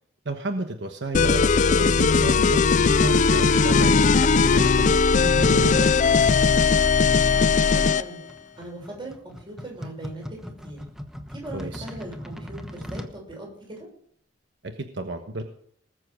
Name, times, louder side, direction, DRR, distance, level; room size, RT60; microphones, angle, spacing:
voice 1, 0.2-1.4 1.8-6.2 11.5-11.8 14.6-15.4, right 2 dB, 75° right, 5 dB, 1.2 m, -32 dB
sound 1, 1.1-8.1, left 5 dB, 45° left, 0.4 m, -19 dB
voice 2, 7.2-8.2 8.6-10.4 10.6-10.8 11.3-13.9, right 2 dB, 30° right, -1 dB, 6.5 m, -40 dB
sound 2, 7.5-13.2, equal, 5° right, 1.1 m, -39 dB
19.5 x 7.7 x 6.3 m, 0.63 s
head